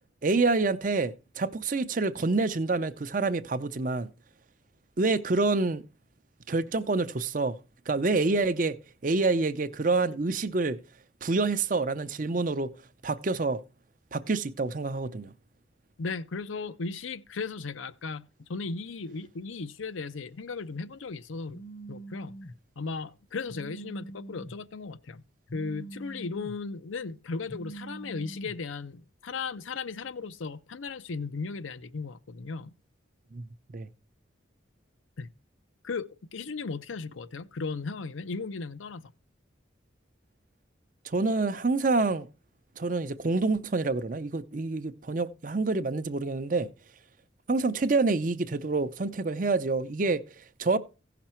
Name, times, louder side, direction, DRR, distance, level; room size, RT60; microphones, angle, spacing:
voice 1, 0.2-4.1 5.0-5.8 6.5-7.6 7.9-8.8 9.0-10.8 11.2-12.7 13.0-13.6 14.1-15.3 33.3-33.5 33.7-33.9 41.0-42.3 42.8-46.7 47.5-50.8, right 3 dB, 40° right, 0.6 m, -27 dB
voice 2, 16.0-21.6 21.9-22.3 22.8-25.2 25.5-32.7 35.2-35.3 35.8-39.1, left 4 dB, 90° left, 0.6 m, -36 dB
Telephone, 21.5-22.5 23.5-24.5 25.5-26.5 27.5-28.5, right 2 dB, 50° left, 0.7 m, -43 dB
16.0 x 5.9 x 4.4 m
head